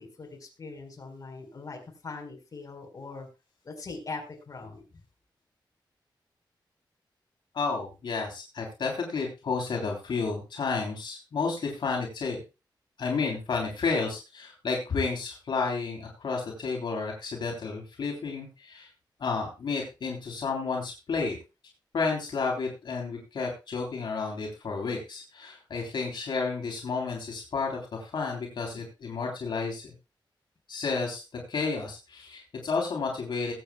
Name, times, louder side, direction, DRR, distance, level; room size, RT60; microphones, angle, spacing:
voice 1, 0.0-3.3 3.6-4.8, left 3 dB, 45° left, 2 dB, 4.4 m, -41 dB
voice 2, 7.5-12.4 13.0-18.9 19.2-21.4 21.9-29.9 30.7-31.2 31.5-33.5, left 4 dB, 75° left, 0 dB, 3.6 m, -31 dB
21.0 x 8.6 x 2.3 m, 0.27 s
wide cardioid pair, 155°, 8 cm